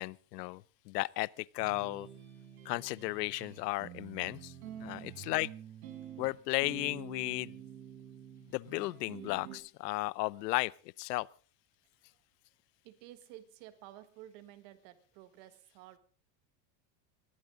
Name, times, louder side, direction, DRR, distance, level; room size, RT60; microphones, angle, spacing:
voice 1, 0.0-2.1 2.6-4.5 4.8-5.5 6.2-7.5 8.5-10.7 11.0-11.3, left 21 dB, 80° left, 0.7 m, -34 dB
sound 1, 1.6-9.6, right 10 dB, 60° right, 5.2 m, -48 dB
voice 2, 12.8-16.0, right 13 dB, 40° right, 1.6 m, -53 dB
21.0 x 16.0 x 3.8 m
supercardioid pair, 180°, 48 cm